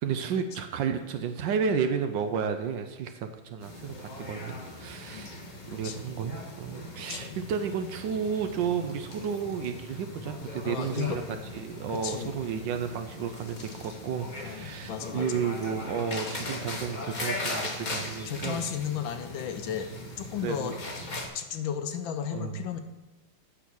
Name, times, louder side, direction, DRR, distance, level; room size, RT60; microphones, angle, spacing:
voice 1, 0.0-5.3 5.7-11.2 11.5-18.6 20.4-20.7 22.3-22.6, right 6 dB, 70° right, 8 dB, 1.2 m, -32 dB
sound 1, 3.6-21.3, left 2 dB, 35° left, 0.7 m, -39 dB
voice 2, 5.7-6.0 7.1-7.4 10.6-11.2 11.9-12.3 14.4-15.4 18.2-19.9 20.2-20.8 21.3-22.8, left 8 dB, 70° left, 8 dB, 1.4 m, -34 dB
8.3 x 6.0 x 6.2 m, 1.0 s
omnidirectional pair, 2.3 m